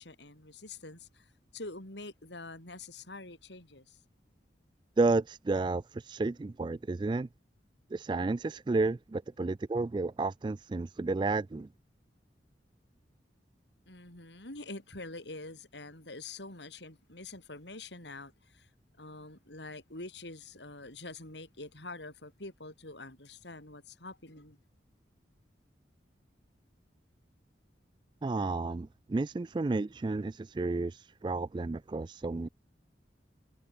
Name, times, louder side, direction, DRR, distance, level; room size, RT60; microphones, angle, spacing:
voice 1, 0.0-4.0 13.9-18.7 19.0-24.6, left 2 dB, 80° left, 6.3 m, -46 dB
voice 2, 5.0-7.3 7.9-11.7 28.2-32.5, right 3 dB, 25° right, 0.3 m, -31 dB
head